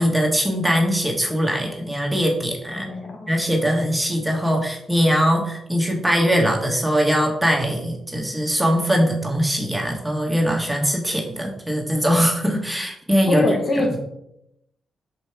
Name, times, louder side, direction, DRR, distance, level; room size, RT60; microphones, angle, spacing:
voice 1, 0.0-2.9 3.3-13.5 13.8-13.9, equal, 5° right, -1 dB, 1.7 m, -21 dB
voice 2, 2.8-3.3 13.3-14.0, left 2 dB, 50° left, -1 dB, 2.5 m, -23 dB
5.3 x 4.7 x 4.6 m, 0.80 s
supercardioid pair, 45°, 0 cm